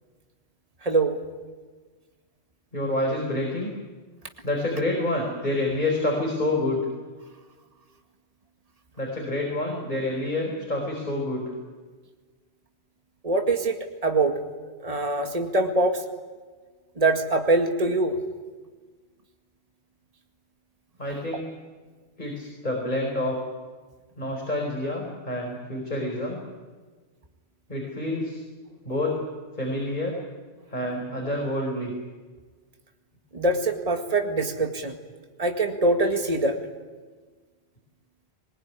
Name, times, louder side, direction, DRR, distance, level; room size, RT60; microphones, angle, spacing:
voice 1, 0.8-1.2 13.2-13.8 14.0-14.4 14.8-16.0 17.0-18.2 33.3-35.0 35.4-36.6, right 2 dB, 35° right, 3 dB, 2.1 m, -23 dB
voice 2, 2.7-3.7 4.4-6.8 9.0-11.4 21.0-21.4 22.2-23.4 24.2-26.4 27.7-28.4 28.8-29.2 29.6-30.1 30.7-31.9, left 1 dB, 40° left, 0 dB, 4.9 m, -28 dB
23.0 x 21.5 x 9.7 m, 1.4 s
omnidirectional pair, 1.1 m